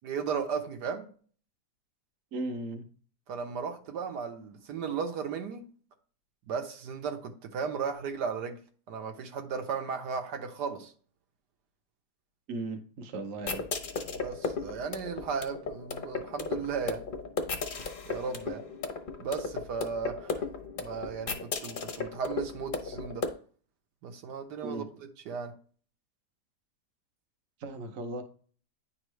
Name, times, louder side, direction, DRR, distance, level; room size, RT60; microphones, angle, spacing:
voice 1, 0.0-1.1 3.3-5.6 6.5-8.6 8.9-10.9 14.0-17.0 18.1-18.6 19.2-20.5 20.8-23.3 24.0-24.8 25.3-25.5, right 6 dB, 80° right, 5 dB, 1.4 m, -35 dB
voice 2, 2.3-2.8 12.5-13.6 24.6-24.8 27.6-28.2, right 2 dB, 55° right, 6 dB, 1.1 m, -36 dB
sound 1, 13.4-23.3, left 4 dB, 45° left, 0.7 m, -35 dB
9.9 x 3.6 x 3.1 m, 0.43 s
omnidirectional pair, 1.8 m